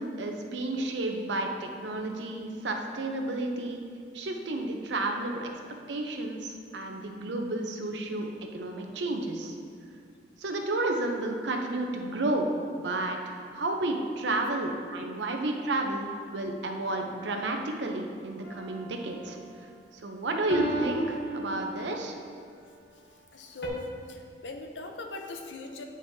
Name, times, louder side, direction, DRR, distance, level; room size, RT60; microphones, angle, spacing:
voice 1, 0.0-3.8 4.1-5.5 5.9-9.5 10.4-19.4 19.9-22.1, right 2 dB, 85° right, 3 dB, 0.7 m, -31 dB
sound 1, 18.4-19.1 20.5-22.1 23.6-23.7, right 1 dB, 60° left, 0.9 m, -36 dB
voice 2, 23.3-25.8, left 3 dB, 90° left, 4 dB, 0.6 m, -41 dB
8.9 x 5.0 x 2.7 m, 2.2 s
head